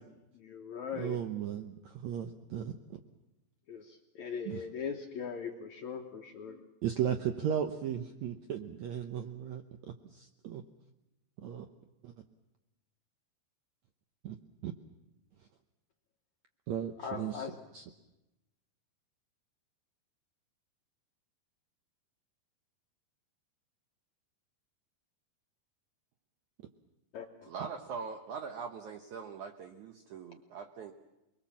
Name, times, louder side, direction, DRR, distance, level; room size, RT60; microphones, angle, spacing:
voice 1, 0.4-1.2 3.7-6.6 17.0-17.6 27.1-27.5, left 6 dB, 65° left, 2 dB, 1.9 m, -40 dB
voice 2, 1.0-3.0 4.5-4.6 6.8-9.6 10.1-10.6 11.4-11.7 12.0-12.1 14.2-14.3 14.6-14.7 16.7-17.5 17.7-17.8, right 9 dB, 85° right, 6 dB, 1.6 m, -35 dB
voice 3, 27.5-30.9, right 5 dB, 70° right, 5 dB, 2.0 m, -42 dB
29.0 x 21.5 x 7.3 m, 0.96 s
omnidirectional pair, 4.6 m